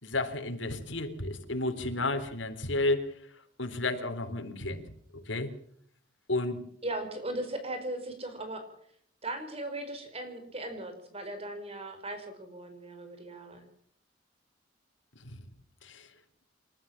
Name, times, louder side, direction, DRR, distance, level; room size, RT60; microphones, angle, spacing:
voice 1, 0.0-3.1 3.6-4.8 5.3-5.5 6.3-6.6 15.2-15.4 15.8-16.1, left 2 dB, 75° left, 6 dB, 3.8 m, -32 dB
voice 2, 6.8-8.7 9.2-13.6, right 1 dB, 30° right, 7 dB, 4.9 m, -38 dB
29.0 x 14.0 x 7.4 m, 0.65 s
head